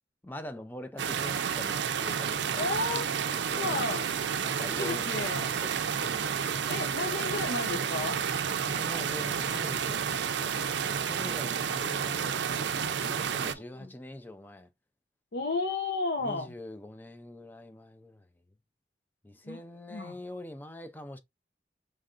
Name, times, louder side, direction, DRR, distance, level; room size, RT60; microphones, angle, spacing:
voice 1, 0.2-2.7 3.5-3.9 4.4-6.3 6.7-7.3 8.6-10.5 10.8-14.7 16.2-18.3 19.2-21.2, left 1 dB, 10° left, 0.5 m, -44 dB
sound 1, 1.0-13.5, right 7 dB, 80° right, 0.4 m, -31 dB
voice 2, 2.5-3.1 3.6-4.1 4.7-5.6 6.7-8.2 13.5-13.9 15.3-16.5 19.4-19.6 19.9-20.2, left 3 dB, 70° left, 0.7 m, -33 dB
5.2 x 3.2 x 2.5 m
head